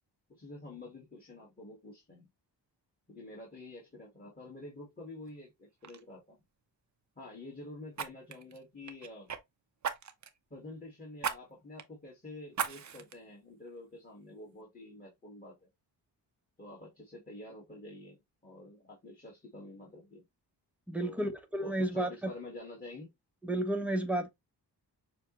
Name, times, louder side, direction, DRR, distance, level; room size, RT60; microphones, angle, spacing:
voice 1, 0.3-2.3 3.1-6.4 7.1-9.3 10.5-15.7 16.6-20.2 21.0-21.3 21.6-23.1, left 2 dB, 20° left, 1.7 m, -48 dB
Fire, 5.3-5.5 5.8-6.0 7.9-9.4 9.8-10.4 11.2-11.4 11.8-11.9 12.5-13.1 13.7-13.8, right 7 dB, 40° right, 0.7 m, -37 dB
voice 2, 20.9-22.3 23.4-24.3, right 1 dB, 5° right, 0.9 m, -32 dB
6.8 x 2.3 x 3.0 m
wide cardioid pair, 120°, 42 cm